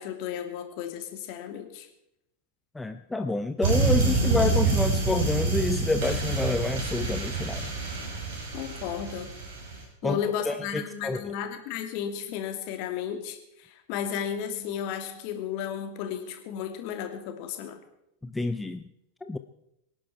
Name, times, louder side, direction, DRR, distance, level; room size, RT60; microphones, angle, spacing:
voice 1, 0.0-1.9 8.5-9.3 10.0-17.8, left 8 dB, 45° left, 6 dB, 2.7 m, -34 dB
voice 2, 2.7-7.7 10.0-10.2 10.5-11.2 18.2-18.8 19.2-19.4, left 3 dB, 10° left, 8 dB, 0.7 m, -28 dB
Some deep noise, 3.6-9.8, right 3 dB, 55° right, 6.5 m, -27 dB
24.5 x 11.0 x 4.5 m, 0.82 s
figure-of-eight pair, 90°, 0 cm